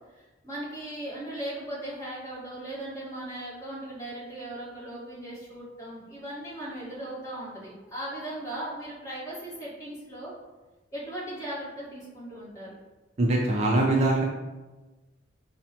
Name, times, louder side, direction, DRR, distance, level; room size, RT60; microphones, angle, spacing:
voice 1, 0.1-10.3 10.9-12.8, right 1 dB, 15° left, -7 dB, 1.3 m, -38 dB
voice 2, 13.2-14.2, right 2 dB, 35° right, -1 dB, 0.4 m, -22 dB
5.5 x 2.1 x 2.8 m, 1.2 s
head